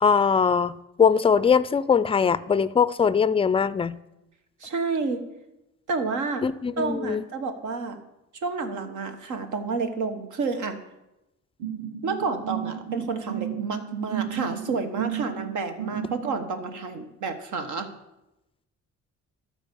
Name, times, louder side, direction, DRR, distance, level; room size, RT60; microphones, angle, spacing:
voice 1, 0.0-4.0 6.4-7.2, left 6 dB, 20° left, 0.3 m, -21 dB
voice 2, 4.6-5.2 5.9-6.5 6.8-8.0 8.4-10.8 12.0-17.9, right 4 dB, 75° right, 1.3 m, -30 dB
sound 1, 11.6-16.4, right 10 dB, 45° right, 1.3 m, -33 dB
12.5 x 4.5 x 6.9 m
cardioid pair, 90°, 30 cm